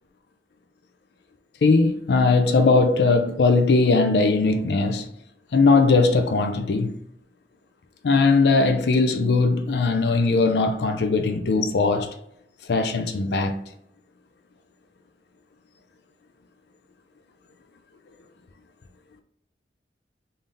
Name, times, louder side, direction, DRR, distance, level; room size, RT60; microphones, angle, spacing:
voice 1, 1.6-5.1 5.5-7.0 8.0-12.1 12.7-13.6, left 3 dB, 70° left, 0.4 m, -19 dB
3.8 x 2.6 x 3.4 m
head